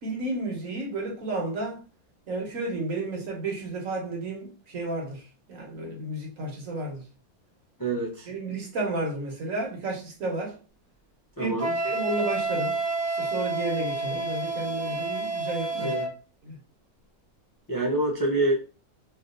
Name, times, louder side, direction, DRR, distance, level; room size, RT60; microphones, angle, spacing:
voice 1, 0.0-1.8 2.3-7.0 8.3-10.6 11.4-11.5 11.8-12.8 13.1-15.9 16.4-16.6, right 2 dB, 65° right, 1.4 m, -32 dB
voice 2, 7.8-8.3 11.4-11.7 15.8-16.1 17.7-18.6, right 2 dB, 30° left, 0.3 m, -26 dB
Wind instrument woodwind instrument, 11.6-16.1, right 3 dB, 10° left, 1.1 m, -29 dB
3.4 x 2.5 x 2.5 m
omnidirectional pair, 1.6 m